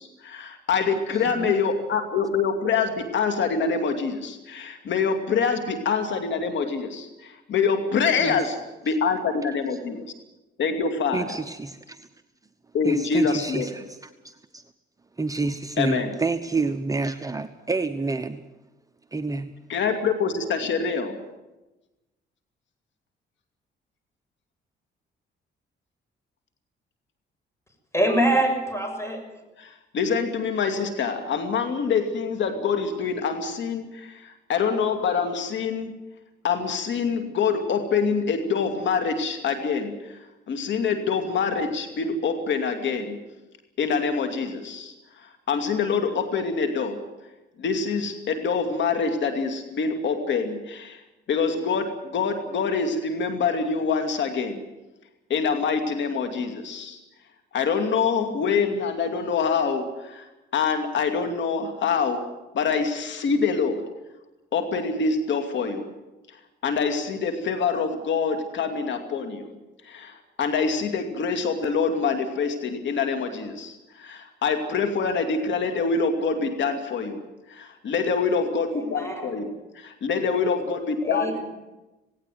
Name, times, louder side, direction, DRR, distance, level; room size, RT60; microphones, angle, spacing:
voice 1, 0.0-8.6 8.8-10.0 10.6-11.2 12.7-13.7 15.8-16.1 19.7-21.2 29.6-35.9 36.4-39.9 40.5-43.2 43.8-44.9 45.5-47.0 47.6-51.0 51.3-54.6 55.3-57.0 57.5-60.3 60.5-62.2 62.5-63.8 64.5-65.9 66.6-69.6 69.8-77.2 77.5-79.5 79.8-81.4, left 5 dB, 65° left, 6 dB, 2.7 m, -25 dB
voice 2, 1.1-1.6 8.2-8.4 9.7-9.8 11.1-12.1 12.8-14.6 15.2-18.4 19.1-19.5, right 3 dB, 15° right, 8 dB, 1.0 m, -29 dB
voice 3, 27.9-29.2 78.7-79.3 81.0-81.4, right 1 dB, 15° left, 5 dB, 6.6 m, -24 dB
18.0 x 17.5 x 9.4 m, 1.0 s
cardioid pair, 90°, 20 cm